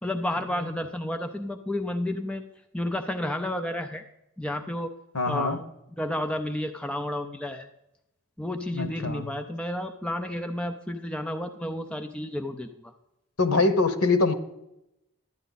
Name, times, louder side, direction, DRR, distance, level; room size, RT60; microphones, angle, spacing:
voice 1, 0.0-2.4 2.7-4.0 4.4-4.9 5.3-5.6 6.0-7.7 8.4-12.9, left 1 dB, 5° left, 5 dB, 0.5 m, -31 dB
voice 2, 5.1-5.6 8.7-9.3 13.4-14.3, left 3 dB, 90° left, 10 dB, 1.2 m, -23 dB
12.0 x 9.3 x 4.0 m, 0.86 s
head